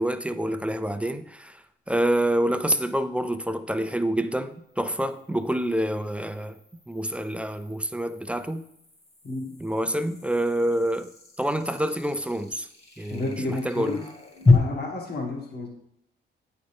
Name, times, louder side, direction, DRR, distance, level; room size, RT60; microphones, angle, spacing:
voice 1, 0.0-6.6 6.9-8.6 9.6-11.1 11.4-12.7 13.0-13.2 13.6-14.0, right 1 dB, 5° right, 0.4 m, -27 dB
sound 1, 0.9-1.0 4.4-14.5, left 3 dB, 30° left, 1.5 m, -31 dB
voice 2, 13.1-14.0 14.5-15.7, left 2 dB, 55° left, 1.7 m, -31 dB
8.6 x 5.3 x 3.4 m
cardioid pair, 90°, 20 cm